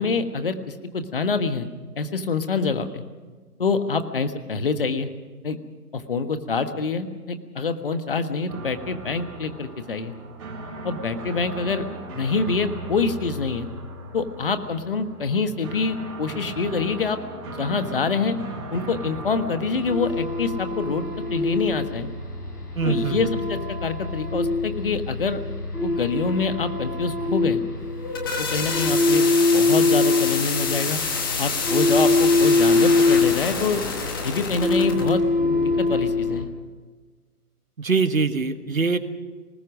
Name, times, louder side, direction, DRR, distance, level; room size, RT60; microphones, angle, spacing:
voice 1, 0.0-1.7 2.0-3.0 3.6-5.1 5.4-5.6 5.9-10.1 10.8-11.9 12.1-13.7 14.1-17.2 17.5-18.4 18.7-22.1 22.8-25.4 25.8-27.6 28.4-29.3 29.5-31.0 31.4-33.8 34.2-35.3 35.8-36.5, left 4 dB, 35° left, 9 dB, 1.4 m, -26 dB
sound 1, 8.5-24.4, right 2 dB, 20° right, 4.5 m, -39 dB
sound 2, 19.8-36.4, left 2 dB, 80° left, 5.4 m, -23 dB
voice 2, 22.7-23.3 37.8-39.0, right 4 dB, 60° right, 10 dB, 1.6 m, -23 dB
sound 3, 27.8-35.1, left 5 dB, 15° left, 1.2 m, -28 dB
24.5 x 20.0 x 6.2 m, 1.4 s
figure-of-eight pair, 145°, 46 cm